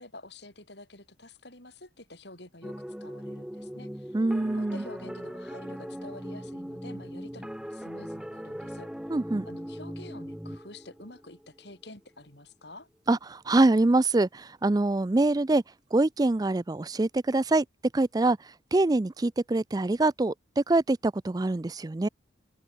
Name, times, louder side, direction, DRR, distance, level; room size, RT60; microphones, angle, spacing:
voice 1, 0.0-4.2 4.5-8.9 9.5-12.9, left 2 dB, 60° left, 7.8 m, -48 dB
sound 1, 2.6-11.9, equal, 5° right, 0.9 m, -40 dB
voice 2, 4.1-4.8 9.1-9.5 13.1-15.6 15.9-17.6 17.9-18.4 18.7-22.1, right 2 dB, 20° right, 0.4 m, -24 dB
head